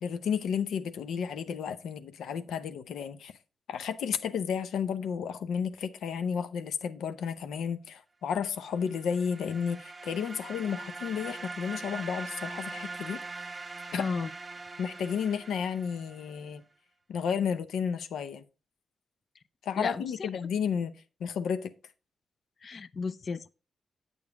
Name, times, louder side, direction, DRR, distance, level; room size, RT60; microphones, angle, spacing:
voice 1, 0.0-3.3 3.7-13.2 13.9-14.1 14.8-16.6 17.1-18.4 19.7-20.9 21.2-21.7, left 7 dB, 90° left, 0.6 m, -32 dB
sound 1, 8.7-16.4, right 3 dB, 25° right, 0.4 m, -42 dB
voice 2, 14.0-14.3 19.8-20.3 22.6-23.6, left 4 dB, 40° left, 0.4 m, -33 dB
8.3 x 6.9 x 3.5 m
wide cardioid pair, 130°, 0 cm